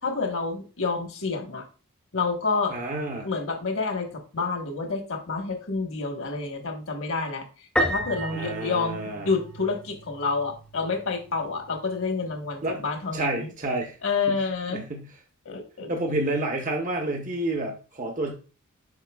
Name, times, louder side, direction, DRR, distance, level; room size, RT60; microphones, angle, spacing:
voice 1, 0.0-1.6 2.1-2.8 3.2-13.5 14.0-14.8 15.4-15.9, left 4 dB, 65° left, 4 dB, 1.4 m, -29 dB
voice 2, 2.7-3.3 8.3-9.3 12.6-12.8 13.1-14.0 14.3-14.4 14.7-15.1 15.9-18.3, right 2 dB, 35° right, 2 dB, 1.0 m, -29 dB
Piano, 7.8-9.6, right 1 dB, 5° left, 0.6 m, -29 dB
sound 1, 8.0-13.4, right 4 dB, 80° right, 0.7 m, -45 dB
8.5 x 5.8 x 2.4 m, 0.35 s
head